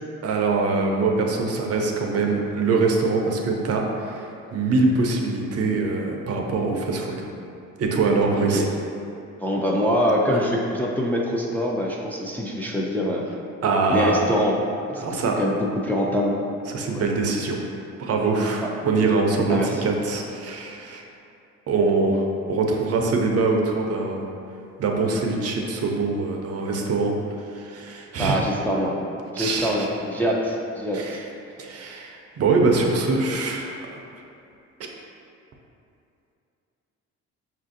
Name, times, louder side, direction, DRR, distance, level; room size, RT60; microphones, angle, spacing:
voice 1, 0.2-7.3 7.8-8.6 10.3-10.4 13.6-14.3 15.0-15.4 16.7-17.6 18.0-21.0 21.7-24.2 24.8-27.1 27.5-28.4 29.4-29.9 30.9-31.2 31.6-33.8, right 3 dB, 55° right, 1 dB, 0.5 m, -23 dB
voice 2, 9.4-13.2 13.9-14.6 14.9-16.4 16.9-17.0 18.6-18.7 19.5-19.8 28.2-28.9 29.3-31.0, equal, 5° left, -3 dB, 0.3 m, -24 dB
5.3 x 2.5 x 2.5 m, 2.6 s
cardioid pair, 90°, 30 cm